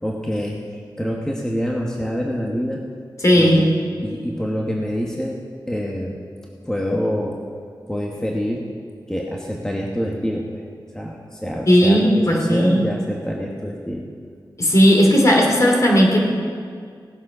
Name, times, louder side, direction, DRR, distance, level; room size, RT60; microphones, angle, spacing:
voice 1, 0.0-2.8 3.4-3.7 4.0-5.4 5.7-6.2 6.6-7.4 7.9-8.6 9.1-10.7 10.9-14.1, equal, 10° left, -2 dB, 1.1 m, -26 dB
voice 2, 3.2-3.6 11.7-12.8 14.6-16.3, equal, 40° left, -1 dB, 2.6 m, -15 dB
17.5 x 7.3 x 6.1 m, 2.1 s
wide cardioid pair, 115°, 8 cm